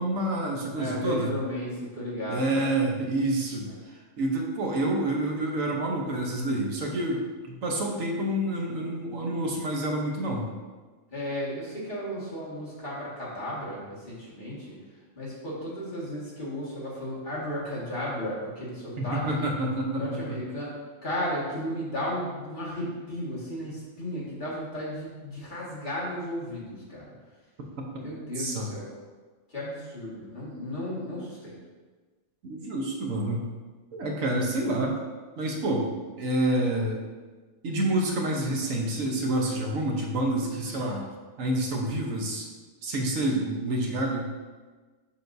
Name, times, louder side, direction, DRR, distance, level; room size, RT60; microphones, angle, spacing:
voice 1, 0.0-1.3 2.3-10.5 19.0-20.4 27.8-27.9 28.4-28.7 32.4-33.4 33.9-35.0 35.4-35.9 36.2-37.0 37.6-41.0 41.4-42.5 42.8-44.3, right 1 dB, 75° right, 0 dB, 1.3 m, -28 dB
voice 2, 0.7-2.5 3.6-3.8 11.1-14.8 15.2-19.4 19.9-20.8 21.0-27.1 28.0-28.9 29.5-31.6 40.8-40.9, equal, 35° left, -8 dB, 1.9 m, -34 dB
7.0 x 6.0 x 2.6 m, 1.3 s
omnidirectional pair, 1.4 m